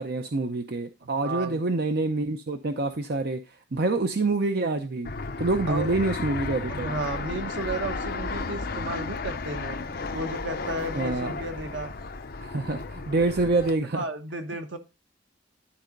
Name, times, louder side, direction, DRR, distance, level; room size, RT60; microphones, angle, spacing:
voice 1, 0.0-5.1 5.4-6.9 10.9-11.3 12.4-14.0, right 3 dB, 60° right, 7 dB, 0.7 m, -27 dB
voice 2, 1.0-1.6 5.7-6.0 6.7-9.8 10.1-11.9 13.1-13.3 13.9-14.8, right 2 dB, 80° right, 6 dB, 1.4 m, -33 dB
Fixed-wing aircraft airplane, 5.0-13.7, left 3 dB, 55° left, 0.9 m, -34 dB
11.5 x 4.3 x 5.2 m, 0.28 s
head